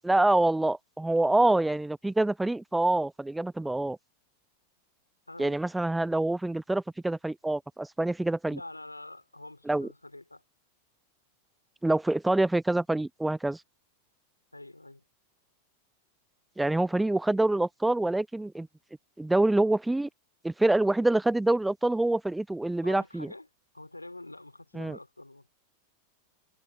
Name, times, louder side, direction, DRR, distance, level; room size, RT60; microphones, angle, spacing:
voice 1, 0.0-4.0 5.4-8.6 9.7-9.9 11.8-13.6 16.6-18.7 19.2-20.1 20.4-23.3 24.7-25.0, right 2 dB, 5° right, 0.8 m, -26 dB
voice 2, 5.3-5.6 8.5-10.4 14.5-15.0 22.8-23.5 23.7-25.5, left 2 dB, 85° left, 2.7 m, -46 dB
figure-of-eight pair, 90°, 0 cm